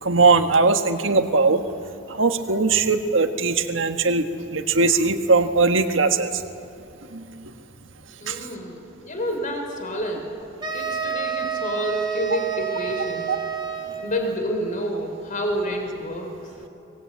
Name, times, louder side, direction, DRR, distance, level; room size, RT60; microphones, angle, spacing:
voice 1, 0.0-1.6 2.1-4.2 4.5-6.3 7.1-7.2 8.3-8.4, right 4 dB, 75° right, 7 dB, 1.6 m, -19 dB
voice 2, 8.2-10.3 10.7-13.4 14.0-16.4, equal, 40° left, 3 dB, 3.9 m, -29 dB
sound 1, 10.6-14.3, right 7 dB, 25° right, 2.6 m, -29 dB
24.0 x 20.0 x 8.7 m, 2.9 s
head